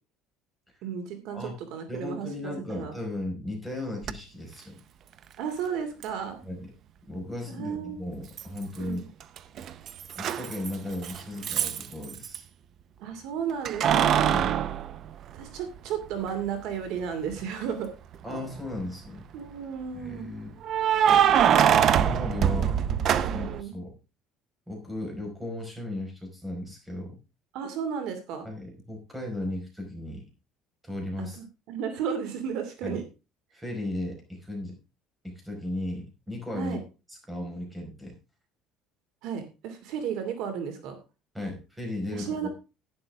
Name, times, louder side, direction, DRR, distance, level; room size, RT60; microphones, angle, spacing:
voice 1, 0.8-2.9 5.4-6.4 7.5-8.0 8.8-9.1 13.0-14.4 15.3-17.9 19.3-20.3 22.4-22.7 23.2-23.7 27.5-28.5 31.2-33.0 36.5-36.8 39.2-41.0 42.1-42.5, right 7 dB, 65° right, 7 dB, 2.6 m, -34 dB
voice 2, 1.9-4.8 6.4-6.7 7.1-9.0 10.1-12.4 14.3-14.5 18.2-19.3 19.9-20.6 21.9-22.8 23.2-24.0 24.7-27.2 28.4-30.3 30.8-31.4 32.8-33.0 33.5-34.8 35.2-36.8 37.1-38.2 41.3-42.5, left 1 dB, 5° right, 2 dB, 5.2 m, -36 dB
Keys jangling, 4.0-4.1 6.0-6.1 8.4-8.9 9.2-12.4 13.7-15.8 16.3-16.4 18.1-18.7 20.6-23.6, right 9 dB, 45° right, 0.7 m, -24 dB
11.5 x 11.0 x 3.6 m, 0.29 s
cardioid pair, 150°, 0 cm